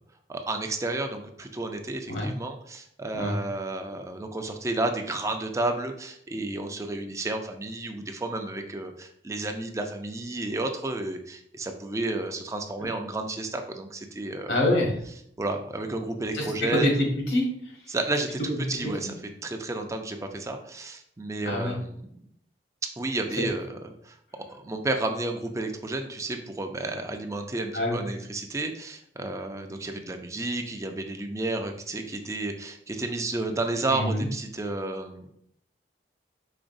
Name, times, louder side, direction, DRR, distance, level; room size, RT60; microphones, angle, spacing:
voice 1, 0.3-14.6 15.4-16.9 17.9-19.1 19.4-22.1 23.0-24.1 24.5-35.3, right 2 dB, 15° right, 4 dB, 0.5 m, -31 dB
voice 2, 14.5-14.9 16.3-16.4 16.7-17.5 18.8-19.1 21.4-21.7 23.4-23.5 27.7-28.0 33.9-34.3, left 1 dB, 80° left, -1 dB, 1.5 m, -25 dB
5.0 x 3.9 x 2.6 m, 0.70 s
head